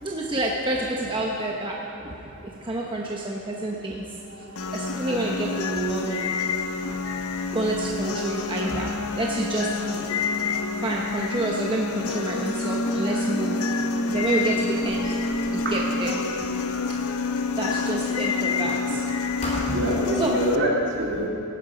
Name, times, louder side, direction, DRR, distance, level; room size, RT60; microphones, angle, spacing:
voice 1, 0.0-2.2 2.6-4.0 4.7-6.3 7.5-10.1 10.8-13.6 14.1-15.2 15.5-16.5 17.6-19.1 19.5-20.4, right 2 dB, 20° right, -2 dB, 0.9 m, -29 dB
sound 1, 4.6-20.6, left 4 dB, 75° left, 0.7 m, -27 dB
Squeak, 13.3-17.1 17.6-19.1 19.4-20.0, left 1 dB, 30° left, 2.9 m, -40 dB
voice 2, 19.7-21.3, right 1 dB, 55° right, -2 dB, 2.3 m, -25 dB
18.0 x 10.5 x 5.0 m, 2.9 s
head